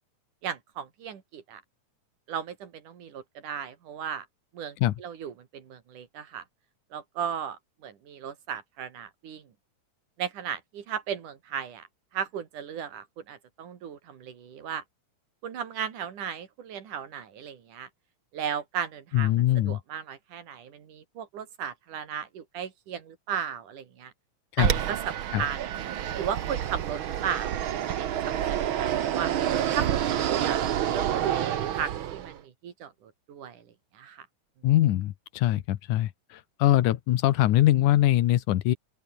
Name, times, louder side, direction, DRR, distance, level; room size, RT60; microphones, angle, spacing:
voice 1, 0.4-1.6 2.3-4.3 4.5-6.4 6.9-9.5 10.2-11.9 12.1-14.8 15.4-17.9 18.3-19.3 19.7-24.1 24.6-25.6 26.2-27.6 27.9-29.3 29.8-33.7 33.9-34.3, right 8 dB, 85° right, 4.0 m, -36 dB
voice 2, 19.1-19.8 24.6-24.7 25.3-25.4 34.6-36.1 36.6-38.8, left 14 dB, 85° left, 2.6 m, -22 dB
Fixed-wing aircraft airplane, 24.6-32.4, right 10 dB, 60° right, 1.5 m, -28 dB
open air
omnidirectional pair, 3.5 m